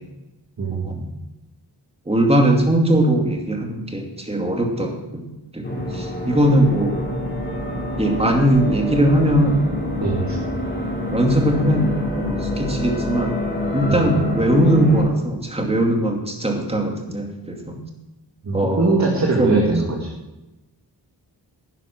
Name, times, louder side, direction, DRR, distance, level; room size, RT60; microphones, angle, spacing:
voice 1, 0.7-1.1 2.1-5.3 5.5-7.0 8.0-9.7 11.0-13.4 13.7-17.8 18.5-19.0 19.4-19.7, right 1 dB, 15° right, 2 dB, 2.4 m, -20 dB
sound 1, 5.6-15.0, left 2 dB, 30° left, 4.4 m, -26 dB
voice 2, 10.0-10.4 13.9-14.0 18.4-20.1, right 3 dB, 45° right, -1 dB, 2.1 m, -21 dB
11.0 x 9.9 x 6.1 m, 1.0 s
wide cardioid pair, 120°, 41 cm